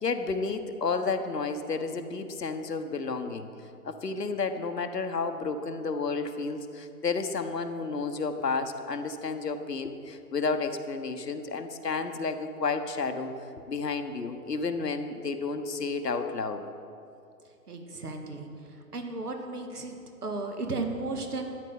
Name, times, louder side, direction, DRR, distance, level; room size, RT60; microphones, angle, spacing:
voice 1, 0.0-3.5 3.8-16.6, left 4 dB, 75° left, 7 dB, 1.1 m, -31 dB
voice 2, 17.7-18.5 18.9-20.0 20.2-21.4, right 3 dB, 70° right, 4 dB, 1.8 m, -34 dB
13.0 x 9.3 x 5.4 m, 2.6 s
figure-of-eight pair, 130°, 48 cm